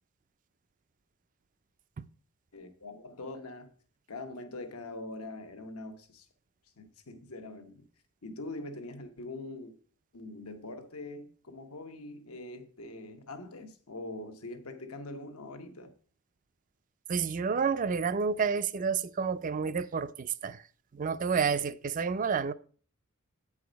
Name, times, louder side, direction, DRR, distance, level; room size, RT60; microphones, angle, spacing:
voice 1, 2.5-3.7 4.1-6.3 6.8-7.9 8.2-9.7 10.1-15.9, left 2 dB, 85° left, 1.1 m, -43 dB
voice 2, 17.1-20.6 20.9-22.5, right 5 dB, 35° right, 0.4 m, -30 dB
9.0 x 4.8 x 5.1 m
head